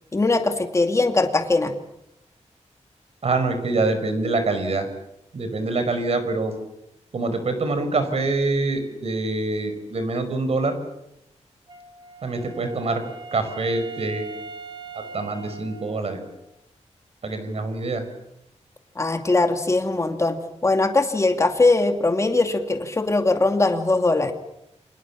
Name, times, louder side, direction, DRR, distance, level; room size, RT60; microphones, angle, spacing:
voice 1, 0.1-1.7 19.0-20.4 20.6-24.3, left 2 dB, 25° left, 5 dB, 2.4 m, -20 dB
voice 2, 3.2-4.9 5.3-6.6 7.1-10.7 12.2-13.0 13.3-14.4 15.1-16.2 17.2-18.0, right 3 dB, 55° right, 8 dB, 5.4 m, -25 dB
Wind instrument woodwind instrument, 11.7-16.5, right 4 dB, 40° right, 4.3 m, -40 dB
29.0 x 26.0 x 7.4 m, 0.85 s
wide cardioid pair, 175°, 12 cm